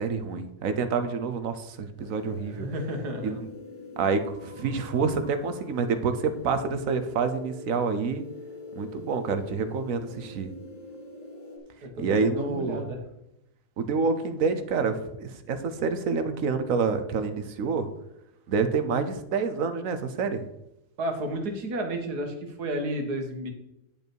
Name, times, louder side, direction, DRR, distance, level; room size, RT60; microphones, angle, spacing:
voice 1, 0.0-2.7 3.2-3.5 4.0-8.2 8.8-10.5 12.0-12.8 13.8-17.9 18.5-20.4, right 5 dB, 60° right, 9 dB, 1.1 m, -27 dB
sound 1, 2.0-11.6, left 3 dB, 50° left, 2.0 m, -43 dB
voice 2, 2.2-3.4 11.8-13.0 21.0-23.5, right 1 dB, 75° right, 4 dB, 2.0 m, -32 dB
10.5 x 5.3 x 4.6 m, 0.85 s
omnidirectional pair, 1.7 m